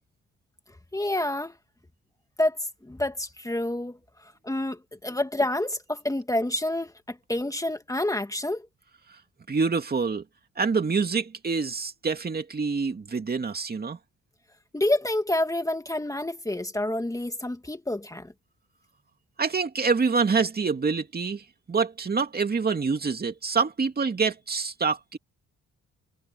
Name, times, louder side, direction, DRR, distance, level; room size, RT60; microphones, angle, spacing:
voice 1, 0.9-1.6 2.4-8.7 14.7-18.3, left 1 dB, 10° left, 2.1 m, -28 dB
voice 2, 9.5-10.2 10.6-14.0 19.4-25.2, right 5 dB, 30° right, 2.4 m, -26 dB
cardioid pair, 90°, 30 cm